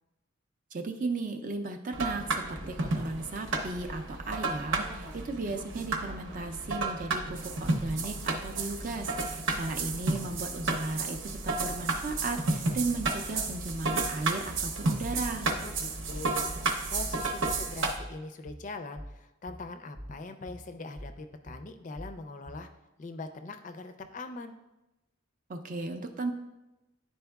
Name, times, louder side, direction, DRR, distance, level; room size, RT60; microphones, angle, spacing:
voice 1, 0.7-15.5 25.5-26.3, right 3 dB, 40° right, 4 dB, 0.4 m, -35 dB
sound 1, 1.9-17.9, right 3 dB, 70° right, 0.8 m, -32 dB
sound 2, 13.0-22.8, equal, 20° right, 0.8 m, -46 dB
voice 2, 15.6-22.7 23.0-24.6, left 3 dB, 35° left, 8 dB, 0.4 m, -42 dB
10.5 x 4.2 x 2.3 m, 1.0 s
head